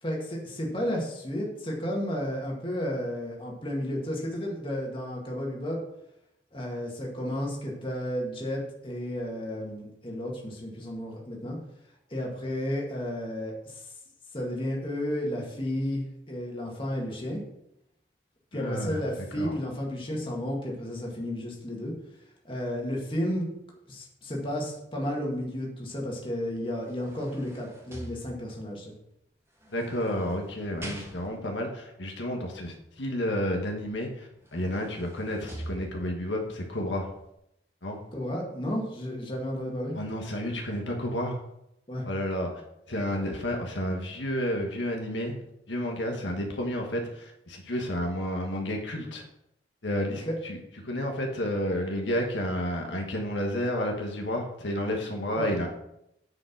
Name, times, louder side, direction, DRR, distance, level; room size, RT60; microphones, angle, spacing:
voice 1, 0.0-5.8 6.5-11.6 12.1-13.9 14.3-17.4 18.5-21.9 22.4-23.5 23.9-28.9 38.1-40.0 41.9-42.1 50.2-50.3 55.4-55.5, equal, 25° left, -1 dB, 2.0 m, -32 dB
voice 2, 18.5-19.0 19.4-19.6 29.7-37.1 37.8-38.0 39.9-41.4 42.0-42.5 42.9-45.4 45.7-49.2 49.8-50.6 50.8-55.7, equal, 75° left, 2 dB, 1.4 m, -31 dB
sound 1, 26.5-28.8 29.6-31.6 33.8-33.9 34.3-36.3 36.9-37.0, right 1 dB, 15° right, 1.3 m, -44 dB
9.6 x 5.2 x 6.0 m, 0.81 s
head